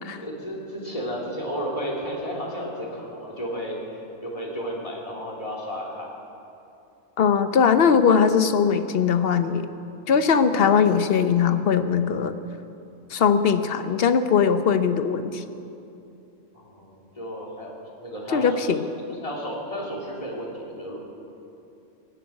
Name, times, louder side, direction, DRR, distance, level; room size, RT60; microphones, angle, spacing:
voice 1, 0.2-6.1 16.5-17.7 18.0-18.7 19.1-21.0, equal, 25° left, -2 dB, 2.7 m, -33 dB
voice 2, 7.2-9.7 10.1-12.3 13.1-15.4 18.3-18.9, left 6 dB, 55° left, 10 dB, 0.9 m, -20 dB
16.5 x 7.9 x 9.9 m, 2.7 s
omnidirectional pair, 1.3 m